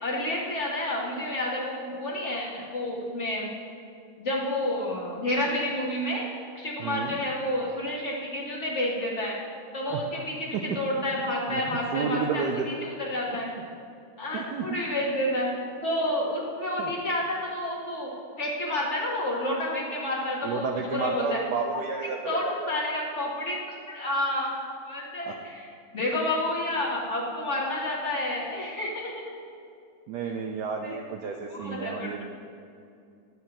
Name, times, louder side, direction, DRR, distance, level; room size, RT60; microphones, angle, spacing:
voice 1, 0.0-3.5 4.2-6.3 6.5-9.4 9.7-13.5 14.2-15.5 15.8-21.4 21.7-21.8 22.3-23.6 23.9-24.5 24.8-25.7 25.9-29.1 30.8-31.0 31.5-32.2, left 1 dB, 40° left, -4 dB, 1.2 m, -30 dB
voice 2, 6.8-7.2 9.9-10.0 10.5-10.6 11.5-12.7 14.3-14.8 16.8-16.9 20.4-22.7 25.3-25.4 30.1-32.2, right 5 dB, 75° right, 2 dB, 1.0 m, -31 dB
10.5 x 7.6 x 2.9 m, 2.5 s
omnidirectional pair, 2.2 m